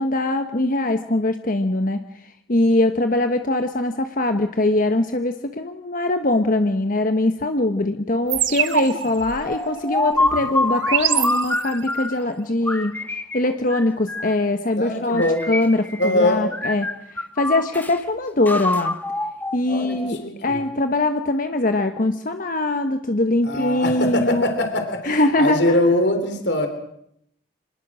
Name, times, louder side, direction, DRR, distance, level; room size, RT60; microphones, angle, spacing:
voice 1, 0.0-13.0 13.3-16.9 17.1-19.0 19.5-24.4 25.0-25.8, left 2 dB, 45° left, 7 dB, 1.1 m, -22 dB
sound 1, 8.3-12.0, right 10 dB, 80° right, 1.5 m, -26 dB
sound 2, 9.5-12.2 12.7-14.5 15.1-16.2 16.5-18.0 18.5-20.2, left 2 dB, 10° left, 1.1 m, -26 dB
voice 2, 14.8-15.5 16.0-16.5 19.7-20.6 23.4-26.7, left 1 dB, 60° left, 6 dB, 3.5 m, -22 dB
26.5 x 20.0 x 6.2 m, 0.73 s
head